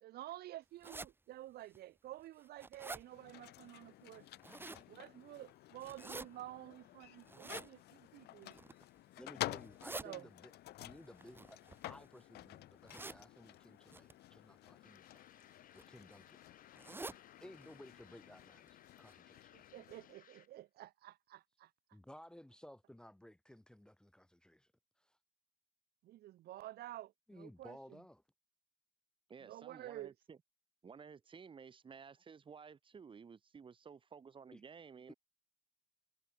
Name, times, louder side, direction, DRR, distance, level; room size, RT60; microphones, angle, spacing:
voice 1, 0.0-4.3 4.9-8.6 10.0-10.3 19.5-21.7 26.0-28.0 29.4-30.1, right 14 dB, 70° right, 1.2 m, -51 dB
sound 1, 0.8-1.1 1.7-1.8 2.3-3.0 4.2-4.8 5.8-6.3 7.3-7.7 8.4-8.8 9.6-10.1 11.2-12.2 12.9-13.2 13.9-14.1 15.1-15.4 15.8-15.9 16.1-16.2 16.8-17.2 17.6-17.7 18.0-18.1 18.7-18.8 19.1-19.2, right 2 dB, 10° right, 1.5 m, -47 dB
sound 2, 3.0-20.2, left 16 dB, 75° left, 2.3 m, -51 dB
voice 2, 9.2-10.5 10.8-15.0 15.7-16.4 17.4-19.6 21.9-24.7 25.0-25.2 27.3-28.2 34.5-34.6, left 1 dB, 5° left, 0.9 m, -57 dB
sound 3, 14.8-20.6, left 10 dB, 55° left, 7.4 m, -64 dB
voice 3, 29.3-30.4 30.8-35.1, right 6 dB, 30° right, 1.4 m, -54 dB
cardioid pair, 110°, 17 cm